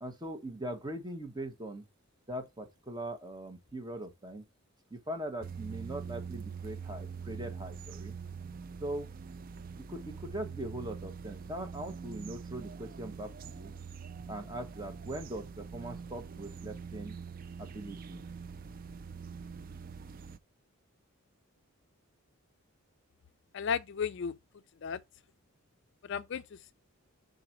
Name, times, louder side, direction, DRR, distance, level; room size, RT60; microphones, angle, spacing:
voice 1, 0.0-1.9 2.3-4.4 4.9-8.1 8.8-9.1 9.9-13.7 14.3-17.2 17.6-18.2, right 1 dB, 20° right, 1.1 m, -41 dB
sound 1, 5.4-20.4, right 6 dB, 40° right, 0.3 m, -44 dB
voice 2, 23.5-24.4 24.8-25.0 26.0-26.7, left 6 dB, 55° left, 0.4 m, -34 dB
5.9 x 4.0 x 5.8 m
head